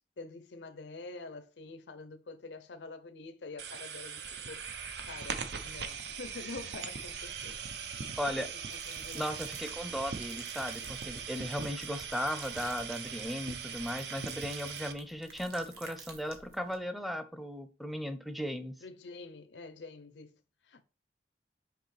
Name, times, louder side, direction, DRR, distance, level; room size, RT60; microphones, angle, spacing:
voice 1, 0.2-4.6 5.1-8.0 8.3-9.4 18.8-20.8, left 3 dB, 85° left, 0.6 m, -47 dB
sound 1, 3.6-14.9, right 6 dB, 75° right, 0.7 m, -40 dB
voice 2, 8.2-8.5 9.1-18.8, equal, ahead, 0.6 m, -36 dB
sound 2, 8.7-16.8, right 4 dB, 60° right, 1.7 m, -51 dB
6.6 x 4.9 x 3.2 m
head